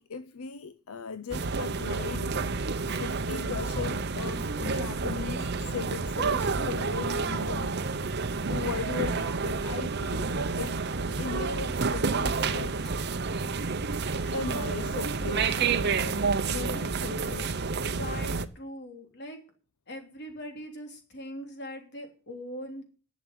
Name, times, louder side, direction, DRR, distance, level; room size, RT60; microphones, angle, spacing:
voice 1, 0.0-7.8 8.5-10.8 11.2-12.9 14.3-17.5, left 6 dB, 75° left, 0.6 m, -38 dB
sound 1, 1.3-18.5, right 4 dB, 50° right, 0.8 m, -29 dB
voice 2, 17.8-19.4 19.9-22.8, equal, 55° left, 3.0 m, -41 dB
11.5 x 7.4 x 8.2 m
head